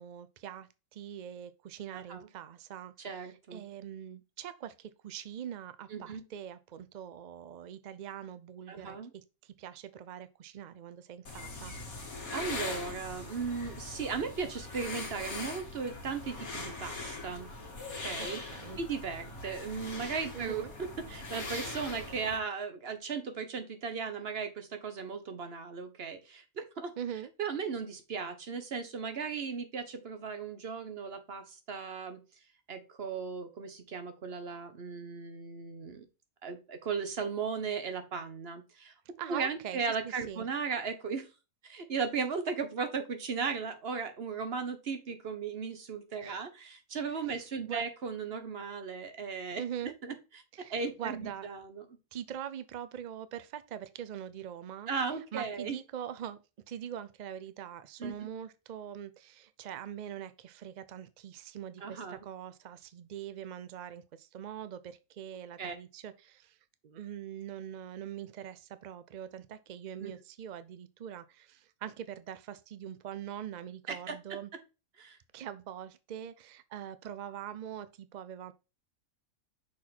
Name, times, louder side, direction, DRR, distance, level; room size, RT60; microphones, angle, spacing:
voice 1, 0.0-11.7 18.2-18.8 20.3-20.7 27.0-27.3 39.2-40.4 46.2-46.4 47.2-47.8 49.6-49.9 50.5-51.5 52.1-54.9 55.3-56.4 56.7-66.6 66.8-74.5 75.3-78.5, right 9 dB, 70° right, 0.4 m, -43 dB
voice 2, 1.9-2.3 3.0-3.6 5.9-6.2 8.7-9.1 12.3-17.5 18.0-18.4 18.8-20.7 21.0-26.9 27.4-32.2 32.7-36.1 36.4-38.9 39.3-41.3 41.6-50.4 50.7-51.8 54.9-55.8 58.0-58.1 61.8-62.3 65.6-65.7 70.0-70.1 73.9-74.4 75.0-75.2, right 5 dB, 50° right, 1.2 m, -36 dB
sound 1, 11.2-22.4, left 3 dB, 80° left, 2.2 m, -41 dB
6.2 x 4.4 x 4.2 m
omnidirectional pair, 1.5 m